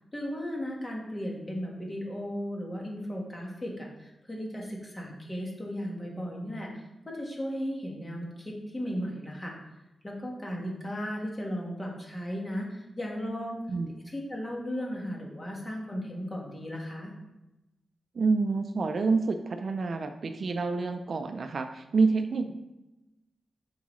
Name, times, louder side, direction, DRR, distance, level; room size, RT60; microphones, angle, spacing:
voice 1, 0.1-9.6 10.0-13.6 14.0-17.1, equal, 20° left, -1 dB, 1.4 m, -36 dB
voice 2, 18.2-22.5, right 4 dB, 55° right, 8 dB, 0.4 m, -28 dB
7.3 x 4.7 x 3.1 m, 0.96 s
wide cardioid pair, 145°, 0 cm